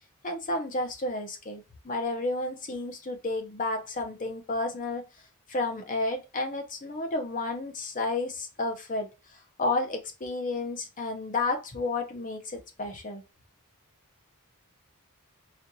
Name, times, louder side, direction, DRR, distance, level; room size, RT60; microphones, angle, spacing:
voice 1, 0.2-5.1 5.5-9.1 9.6-13.2, left 2 dB, 35° left, 0.8 m, -31 dB
4.2 x 2.5 x 2.7 m
head